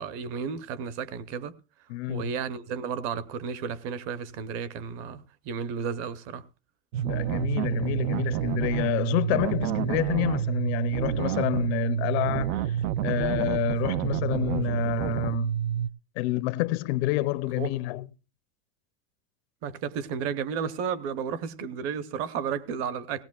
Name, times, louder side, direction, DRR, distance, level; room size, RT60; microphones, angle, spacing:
voice 1, 0.0-1.6 2.1-6.4 17.6-17.7 19.6-23.2, right 7 dB, 35° right, 0.7 m, -33 dB
voice 2, 1.9-2.3 7.0-12.8 13.0-15.5 16.2-18.0, left 18 dB, 55° left, 0.5 m, -28 dB
sound 1, 6.9-15.9, right 10 dB, 85° right, 0.6 m, -28 dB
17.5 x 17.5 x 2.3 m
supercardioid pair, 175°, 39 cm